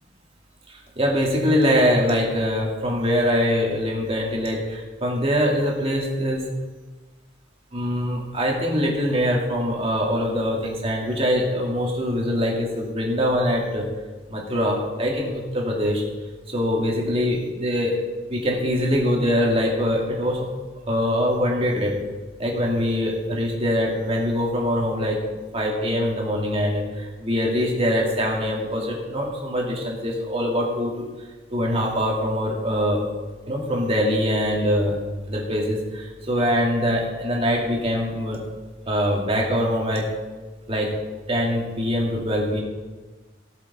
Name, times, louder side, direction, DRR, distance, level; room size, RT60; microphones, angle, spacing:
voice 1, 0.7-6.4 7.7-13.9 14.3-16.0 16.5-18.0 18.3-20.5 20.9-21.9 22.4-25.2 25.5-31.0 31.5-33.0 33.5-35.0 35.3-38.4 38.9-40.1 40.7-40.9 41.3-42.6, equal, 30° right, -2 dB, 2.3 m, -23 dB
17.5 x 7.4 x 4.2 m, 1.3 s
head